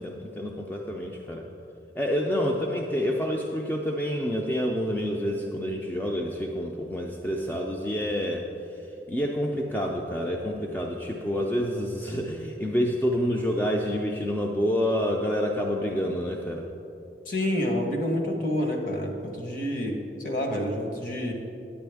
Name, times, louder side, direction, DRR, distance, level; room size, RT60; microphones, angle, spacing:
voice 1, 0.0-1.5 2.0-8.5 9.1-16.7, equal, 10° left, 0 dB, 0.4 m, -28 dB
voice 2, 17.3-20.0 20.2-21.3, left 1 dB, 50° left, 1 dB, 1.1 m, -28 dB
9.8 x 8.5 x 3.4 m, 2.8 s
head